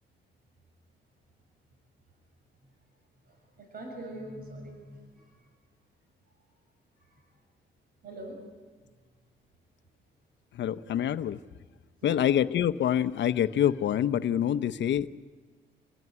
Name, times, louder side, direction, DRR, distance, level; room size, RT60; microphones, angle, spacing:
voice 1, 3.3-5.4 7.0-7.2 8.0-8.4 12.0-12.2, right 1 dB, 50° right, 2 dB, 6.7 m, -43 dB
voice 2, 10.5-11.4 12.0-15.1, left 10 dB, 65° left, 12 dB, 0.9 m, -26 dB
27.0 x 17.0 x 9.8 m, 1.4 s
cardioid pair, 90°, 20 cm